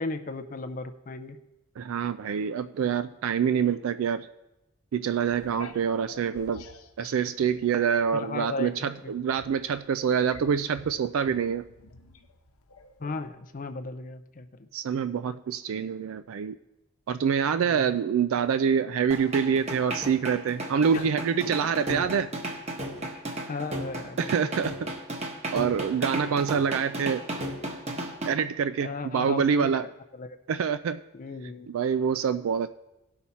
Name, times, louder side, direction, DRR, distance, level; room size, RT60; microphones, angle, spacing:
voice 1, 0.0-1.4 3.6-3.8 8.1-8.7 9.0-9.2 13.0-14.7 17.6-18.0 20.9-21.1 21.6-21.7 23.5-24.5 28.8-29.9 30.1-30.4 31.1-31.7, left 3 dB, 40° left, 9 dB, 0.4 m, -36 dB
voice 2, 1.8-4.3 4.9-6.6 7.0-11.6 14.7-16.6 17.1-22.3 24.2-24.9 25.5-27.2 28.3-29.8 30.5-31.0 31.7-32.7, right 7 dB, 70° right, 12 dB, 0.3 m, -26 dB
sound 1, 5.3-8.1 8.5-13.3, left 3 dB, 85° left, 0.9 m, -48 dB
sound 2, 19.1-28.3, right 1 dB, 30° right, 1.0 m, -34 dB
16.5 x 5.8 x 4.2 m, 0.95 s
head